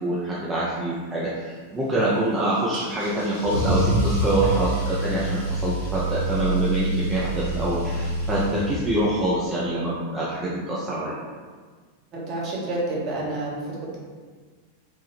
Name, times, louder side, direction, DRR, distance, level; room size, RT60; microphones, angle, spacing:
voice 1, 0.0-11.2, right 1 dB, 15° right, -8 dB, 0.5 m, -25 dB
Car / Engine starting / Accelerating revving vroom, 2.7-9.2, right 1 dB, 75° left, 0.8 m, -26 dB
voice 2, 12.1-14.0, right 2 dB, 35° right, -5 dB, 0.9 m, -29 dB
3.4 x 2.2 x 2.9 m, 1.5 s
figure-of-eight pair, 90°, 0 cm